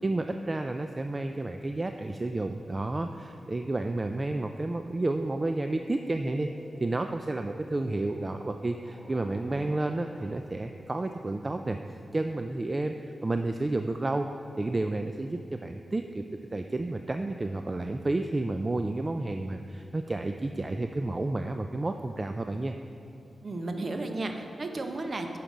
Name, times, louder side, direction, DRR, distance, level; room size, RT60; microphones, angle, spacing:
voice 1, 0.0-6.5 6.8-11.8 12.1-12.9 13.2-14.3 14.6-16.2 16.5-22.8, right 2 dB, 35° right, 6 dB, 0.4 m, -31 dB
sound 1, 5.2-10.4, left 1 dB, 10° left, 1.6 m, -51 dB
voice 2, 23.4-25.4, right 2 dB, 50° right, 5 dB, 0.9 m, -33 dB
9.0 x 5.9 x 5.0 m, 2.7 s
cardioid pair, 55°, 0 cm